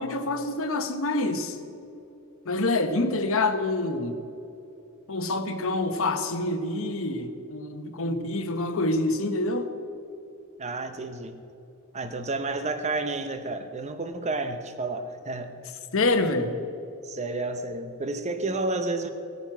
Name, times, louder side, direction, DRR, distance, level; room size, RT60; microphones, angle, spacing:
voice 1, 0.0-1.6 2.4-4.2 5.1-9.7 15.9-16.5, left 2 dB, 65° left, 7 dB, 1.0 m, -26 dB
voice 2, 10.6-11.4 11.9-15.7 16.2-16.5 17.0-19.1, right 2 dB, 30° right, 8 dB, 0.7 m, -31 dB
17.0 x 9.2 x 6.0 m, 2.8 s
head